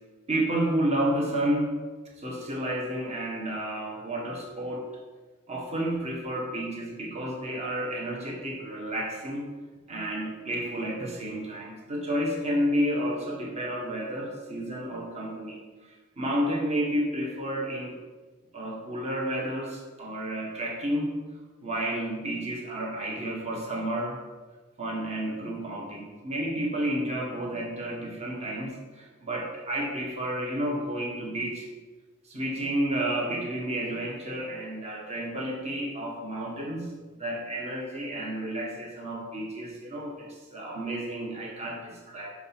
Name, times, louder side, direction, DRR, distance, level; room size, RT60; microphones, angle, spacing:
voice 1, 0.3-1.8 2.2-4.9 5.5-9.5 9.9-15.6 16.2-18.0 18.5-21.1 21.6-24.2 24.8-31.7 32.3-36.9 37.2-42.3, right 1 dB, 30° right, -2 dB, 1.5 m, -31 dB
6.0 x 5.3 x 5.8 m, 1.3 s
head